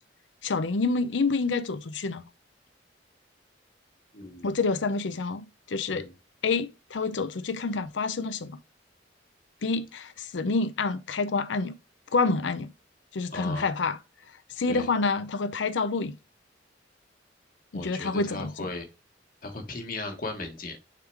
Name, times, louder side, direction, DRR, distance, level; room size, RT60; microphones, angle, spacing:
voice 1, 0.4-2.3 4.4-6.1 6.4-8.6 9.6-11.8 12.1-12.7 13.1-14.0 14.5-16.2 17.7-18.7, left 4 dB, 90° left, 0.6 m, -28 dB
voice 2, 4.1-4.5 5.9-6.1 13.3-13.7 14.7-14.9 17.7-18.9 19.4-20.8, left 2 dB, 50° left, 1.3 m, -36 dB
6.6 x 3.7 x 4.6 m
head